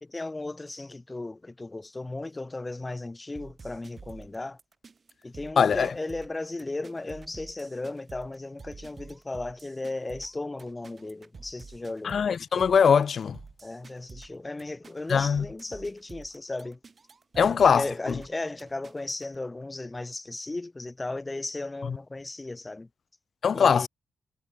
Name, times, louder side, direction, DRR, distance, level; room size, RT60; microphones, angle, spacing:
voice 1, 0.0-4.6 5.2-12.2 13.6-16.8 17.3-22.9 23.5-23.9, left 2 dB, 20° left, 0.7 m, -36 dB
sound 1, 3.4-19.4, right 4 dB, 40° right, 2.7 m, -49 dB
voice 2, 5.6-5.9 12.0-13.4 15.1-15.5 17.4-17.8 21.9-22.0 23.4-23.9, left 6 dB, 60° left, 0.5 m, -21 dB
cardioid pair, 95°, 0 cm